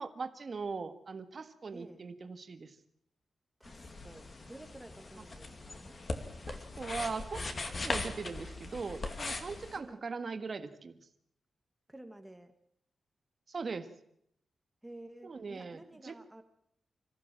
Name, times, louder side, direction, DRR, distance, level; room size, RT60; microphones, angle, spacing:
voice 1, 0.0-2.7 6.5-7.5 7.8-11.0 13.5-13.9 15.2-16.2, right 4 dB, 40° right, 8 dB, 1.7 m, -40 dB
voice 2, 1.7-2.0 3.6-6.0 9.7-10.0 11.9-12.5 14.8-16.4, right 1 dB, 10° right, 7 dB, 1.6 m, -52 dB
sound 1, 3.6-9.8, left 2 dB, 35° left, 2.2 m, -40 dB
26.0 x 15.0 x 7.6 m, 0.73 s
wide cardioid pair, 150°, 0 cm